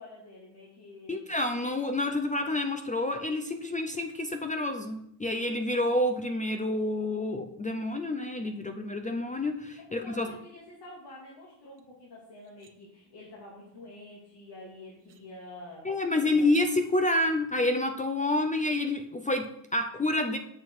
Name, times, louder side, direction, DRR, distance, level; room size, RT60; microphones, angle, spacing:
voice 1, 0.0-1.2 9.8-15.9 16.1-16.5, left 1 dB, 65° left, -5 dB, 2.6 m, -48 dB
voice 2, 1.1-10.3 15.8-20.4, left 2 dB, 20° left, 6 dB, 0.5 m, -28 dB
sound 1, 11.8-11.9 12.3-12.7 14.4-14.5 15.0-15.2 16.4-16.7, right 8 dB, 70° right, 1.1 m, -47 dB
9.1 x 6.5 x 4.7 m, 0.75 s
wide cardioid pair, 170°, 44 cm